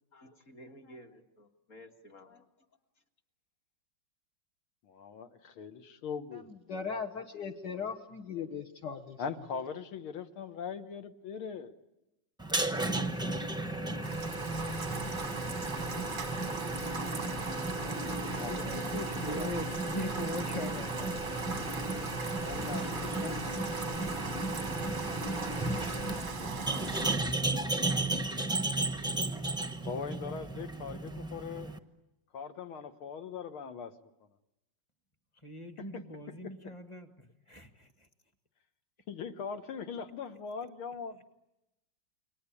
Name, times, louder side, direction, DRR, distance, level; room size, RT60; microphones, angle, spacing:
voice 1, 0.1-2.5, equal, 40° left, 3 dB, 1.9 m, -53 dB
voice 2, 4.8-6.5 9.2-11.7 18.3-19.5 22.4-23.7 29.9-31.7 32.3-33.9 39.1-41.3, left 6 dB, 85° left, 8 dB, 2.1 m, -41 dB
voice 3, 6.7-9.2, left 6 dB, 60° left, 3 dB, 1.7 m, -38 dB
sound 1, 12.4-31.8, right 2 dB, 5° right, 0.4 m, -34 dB
Rain, 14.0-27.2, right 5 dB, 35° right, 0.8 m, -39 dB
voice 4, 17.2-21.5 24.7-26.7 35.3-38.1, equal, 15° left, 7 dB, 1.3 m, -44 dB
29.5 x 23.0 x 8.5 m, 0.94 s
omnidirectional pair, 2.3 m